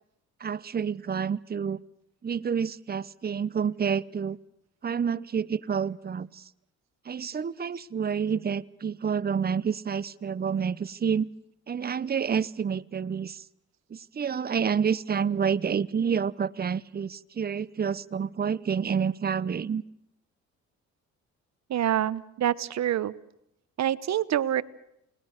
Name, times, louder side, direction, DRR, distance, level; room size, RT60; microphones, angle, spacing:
voice 1, 0.4-1.8 2.2-4.4 4.8-6.4 7.1-11.3 11.7-13.4 13.9-19.8, right 7 dB, 30° right, 17 dB, 0.9 m, -28 dB
voice 2, 21.7-23.1 23.8-24.6, right 11 dB, 60° right, 17 dB, 1.1 m, -26 dB
29.5 x 20.5 x 6.6 m, 0.79 s
cardioid pair, 90°, 30 cm